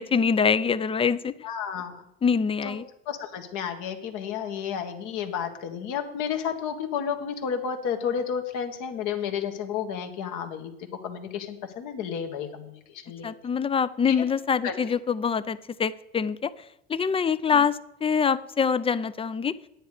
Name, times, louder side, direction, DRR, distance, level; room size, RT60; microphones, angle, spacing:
voice 1, 0.0-1.3 2.2-2.8 13.2-16.5 16.9-19.5, left 6 dB, 15° left, 16 dB, 0.4 m, -24 dB
voice 2, 1.4-2.0 2.6-2.8 3.0-10.7 11.0-13.3 14.1-14.2 14.6-14.8 17.5-17.6, left 7 dB, 60° left, 5 dB, 1.7 m, -31 dB
9.9 x 9.6 x 5.0 m, 0.81 s
hypercardioid pair, 85°, 33 cm